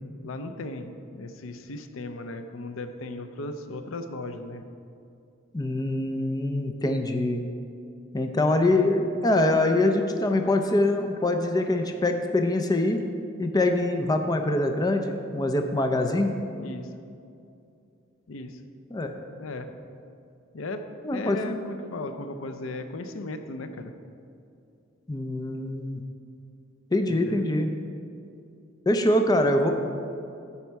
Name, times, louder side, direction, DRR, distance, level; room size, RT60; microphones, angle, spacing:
voice 1, 0.2-4.6 16.6-16.9 18.3-18.6 19.4-19.7 20.5-20.8 21.1-23.9 27.1-27.5, left 2 dB, 75° left, 8 dB, 0.6 m, -36 dB
voice 2, 5.5-7.4 8.1-13.0 13.4-16.3 18.9-19.1 21.0-21.6 25.1-26.0 26.9-27.7 28.9-29.7, left 1 dB, 20° left, 5 dB, 0.5 m, -24 dB
9.8 x 7.1 x 4.6 m, 2.5 s
head